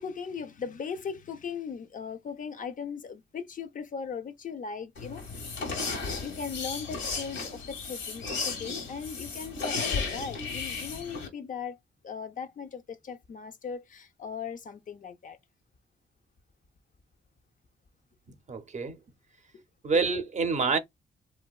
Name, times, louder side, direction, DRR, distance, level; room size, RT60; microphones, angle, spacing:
voice 1, 0.0-5.7 6.2-11.8 12.0-15.4 19.5-19.6 19.9-20.0, left 6 dB, 45° left, 0.4 m, -38 dB
sound 1, 5.0-11.3, left 4 dB, 80° left, 1.0 m, -34 dB
voice 2, 18.5-19.0 19.8-20.8, right 4 dB, 40° right, 0.5 m, -27 dB
2.9 x 2.1 x 2.3 m
cardioid pair, 90°, 19 cm